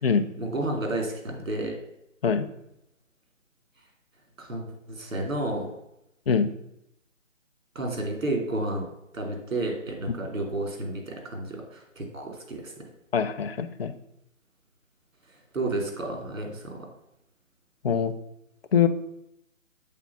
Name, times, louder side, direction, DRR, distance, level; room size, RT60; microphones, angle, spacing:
voice 1, 0.4-1.7 4.4-4.6 4.9-5.7 7.7-12.7 15.5-16.9, right 2 dB, 70° right, 2 dB, 2.7 m, -31 dB
voice 2, 13.1-13.9 17.8-18.1 18.7-18.9, left 7 dB, 45° left, 8 dB, 0.7 m, -23 dB
7.4 x 4.0 x 5.5 m, 0.82 s
figure-of-eight pair, 155°, 40 cm